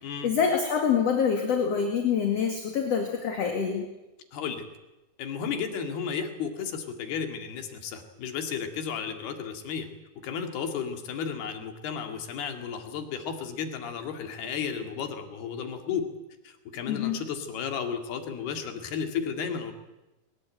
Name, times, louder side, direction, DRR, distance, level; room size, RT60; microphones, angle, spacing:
voice 1, 0.2-3.9 16.9-17.2, left 6 dB, 45° left, 4 dB, 2.7 m, -26 dB
voice 2, 4.3-4.6 5.2-9.9 10.2-16.1 16.4-19.7, left 7 dB, 80° left, 6 dB, 4.1 m, -33 dB
22.0 x 20.5 x 9.0 m, 1.0 s
omnidirectional pair, 4.5 m